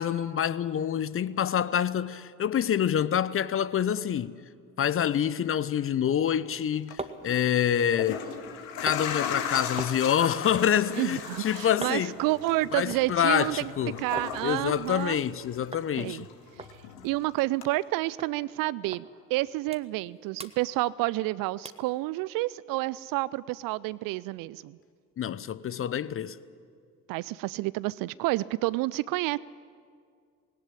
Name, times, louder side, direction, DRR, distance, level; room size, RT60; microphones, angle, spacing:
voice 1, 0.0-4.4 4.8-8.3 8.8-12.1 12.7-14.0 14.4-16.3 25.2-26.4, left 9 dB, 25° left, 0.6 m, -27 dB
sound 1, 6.5-14.4 14.7-15.3 15.7-15.9 16.2-16.3 16.6-17.9 18.2-18.3 18.9-19.1 19.4-20.1 20.3-21.3 21.6-21.9 22.4-22.5, right 3 dB, 10° right, 1.3 m, -44 dB
sound 2, 6.7-6.9 7.8-15.8 16.1-17.2 17.6-17.7, left 7 dB, 60° left, 2.1 m, -37 dB
voice 2, 10.9-13.7 14.0-15.2 16.0-16.3 17.0-24.8 27.1-29.4, right 19 dB, 45° right, 0.4 m, -29 dB
19.0 x 18.0 x 9.9 m
figure-of-eight pair, 55°, 50 cm